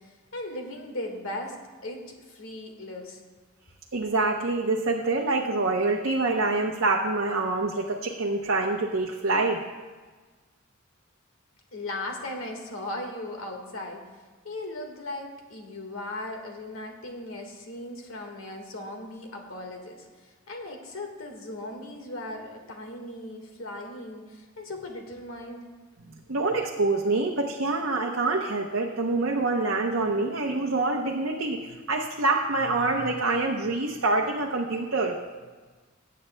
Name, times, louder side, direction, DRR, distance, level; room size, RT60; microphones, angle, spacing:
voice 1, 0.0-1.6 1.8-3.2 11.7-14.0 14.4-25.6, left 1 dB, 80° left, 2 dB, 1.6 m, -38 dB
voice 2, 3.9-9.6 26.3-35.2, right 3 dB, 70° right, 0 dB, 0.8 m, -26 dB
19.5 x 8.6 x 2.2 m, 1.4 s
head